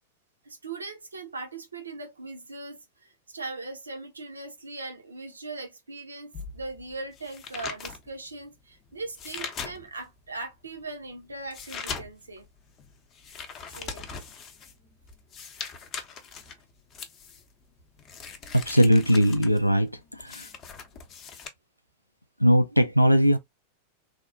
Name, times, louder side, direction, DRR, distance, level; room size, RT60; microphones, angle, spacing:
voice 1, 0.4-12.5 13.7-14.1, right 3 dB, 75° right, 0.7 m, -39 dB
sound 1, 6.3-10.2 10.6-21.5, left 6 dB, 30° left, 0.6 m, -41 dB
voice 2, 18.5-20.5 22.4-23.4, equal, 90° left, 0.4 m, -20 dB
3.4 x 2.3 x 2.5 m
figure-of-eight pair, 90°, 0 cm